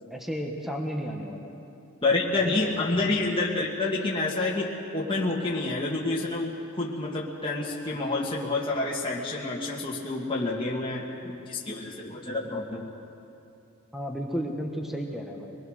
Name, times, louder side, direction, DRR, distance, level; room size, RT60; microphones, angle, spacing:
voice 1, 0.1-1.6 13.9-15.6, equal, ahead, 1 dB, 1.4 m, -33 dB
voice 2, 2.0-12.9, left 2 dB, 20° left, -4 dB, 1.8 m, -28 dB
24.5 x 20.0 x 6.5 m, 2.7 s
head